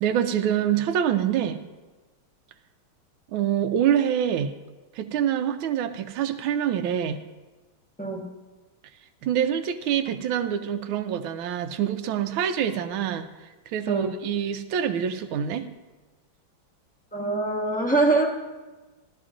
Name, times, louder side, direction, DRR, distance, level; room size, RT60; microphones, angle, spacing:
voice 1, 0.0-1.6 3.3-4.5 4.9-7.2 9.2-13.3 13.7-15.7, right 9 dB, 80° right, 9 dB, 1.4 m, -25 dB
voice 2, 17.1-18.3, right 2 dB, 10° left, -2 dB, 0.5 m, -23 dB
16.0 x 12.5 x 2.5 m, 1.2 s
omnidirectional pair, 2.3 m